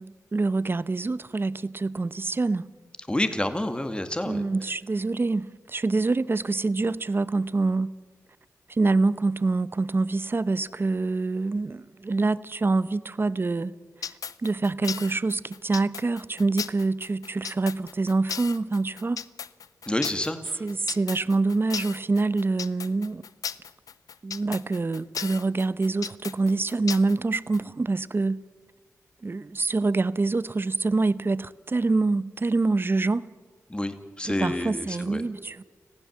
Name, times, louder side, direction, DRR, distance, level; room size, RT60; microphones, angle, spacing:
voice 1, 0.0-2.7 4.3-7.9 8.7-13.7 14.4-19.2 20.6-23.2 24.2-28.4 29.2-33.2 34.4-35.6, right 3 dB, 40° right, 0.8 m, -26 dB
voice 2, 3.1-4.4 19.9-20.7 33.7-35.2, left 1 dB, 15° left, 2.2 m, -29 dB
sound 1, 14.0-27.6, left 7 dB, 80° left, 0.6 m, -35 dB
25.5 x 15.5 x 7.4 m
cardioid pair, 50°, 6 cm